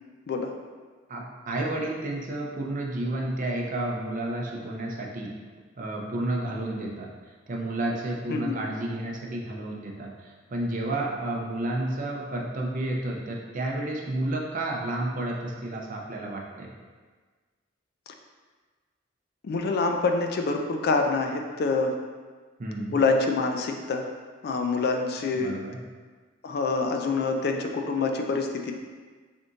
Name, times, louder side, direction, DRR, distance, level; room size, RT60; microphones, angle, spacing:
voice 1, 1.1-5.3 5.8-7.1 7.5-16.7 22.6-23.0 25.3-25.8, right 1 dB, 40° right, -1 dB, 0.5 m, -31 dB
voice 2, 19.4-21.9 22.9-24.1 24.4-25.5 26.4-28.7, left 3 dB, 55° left, 4 dB, 0.3 m, -26 dB
3.4 x 2.6 x 3.8 m, 1.4 s
head